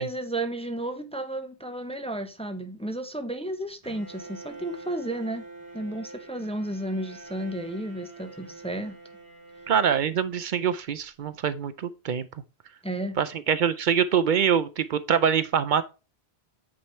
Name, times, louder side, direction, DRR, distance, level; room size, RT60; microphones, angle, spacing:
voice 1, 0.0-5.4 5.7-9.0 12.8-13.2, right 1 dB, 5° left, 0.6 m, -33 dB
Bowed string instrument, 3.8-10.8, right 3 dB, 35° right, 2.6 m, -46 dB
voice 2, 9.7-12.2 13.2-15.8, right 7 dB, 60° right, 0.6 m, -24 dB
8.7 x 3.3 x 4.3 m
omnidirectional pair, 1.1 m